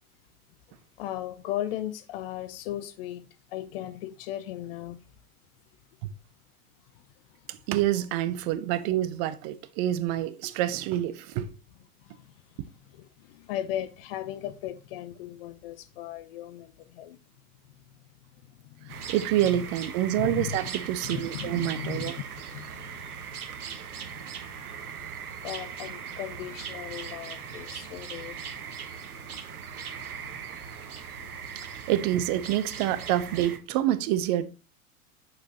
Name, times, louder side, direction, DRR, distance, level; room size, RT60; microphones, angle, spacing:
voice 1, 1.0-3.3 3.5-5.0 13.0-17.2 18.8-19.1 19.3-19.7 20.2-20.6 21.0-22.2 22.5-23.1 24.9-25.0 25.4-28.5 31.2-31.3, left 12 dB, 40° left, 0.6 m, -37 dB
voice 2, 7.5-11.6 19.1-22.2 31.9-34.5, right 13 dB, 30° right, 0.4 m, -27 dB
sound 1, 18.9-33.6, right 7 dB, 75° right, 1.0 m, -39 dB
7.2 x 6.5 x 2.8 m
figure-of-eight pair, 90°, 45 cm